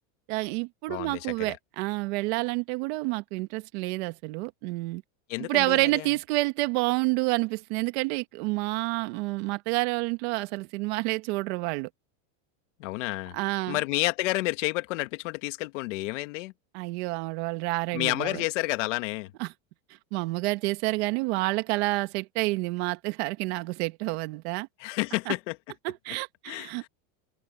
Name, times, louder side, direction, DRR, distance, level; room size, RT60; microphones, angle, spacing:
voice 1, 0.3-5.0 5.4-11.9 13.3-13.8 16.7-18.4 19.4-19.5 20.1-24.7 25.3-25.4 25.8-26.9, right 23 dB, 50° right, 1.7 m, -29 dB
voice 2, 0.9-1.6 5.3-6.1 12.8-13.4 13.7-16.5 17.9-19.3 24.8-25.6 26.5-26.9, left 20 dB, 60° left, 1.8 m, -30 dB
supercardioid pair, 170°, 41 cm